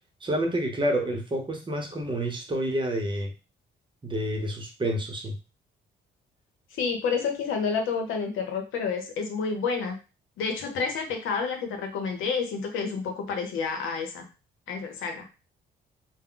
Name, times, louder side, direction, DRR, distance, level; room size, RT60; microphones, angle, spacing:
voice 1, 0.2-3.3 4.0-5.3, right 1 dB, 25° right, 3 dB, 0.7 m, -28 dB
voice 2, 6.7-9.9 10.4-14.2 14.7-15.3, left 5 dB, 80° left, 4 dB, 0.8 m, -29 dB
2.2 x 2.0 x 3.7 m, 0.30 s
cardioid pair, 90°, 20 cm